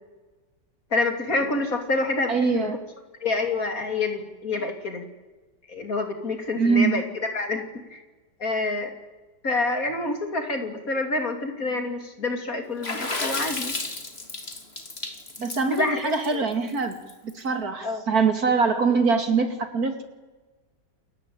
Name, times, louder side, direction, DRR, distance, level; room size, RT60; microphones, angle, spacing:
voice 1, 0.9-2.7 3.2-5.1 5.7-7.0 7.3-7.6 7.9-8.0 8.4-8.9 9.4-13.8 15.7-16.5 17.8-18.0, left 3 dB, 50° left, 5 dB, 3.7 m, -27 dB
voice 2, 2.3-2.8 6.5-7.0 15.4-17.0 17.2-20.1, right 4 dB, 55° right, 8 dB, 2.9 m, -23 dB
Water / Splash splatter, 12.8-17.3, left 2 dB, 35° left, 3.1 m, -32 dB
28.5 x 22.0 x 8.9 m, 1.3 s
omnidirectional pair, 1.9 m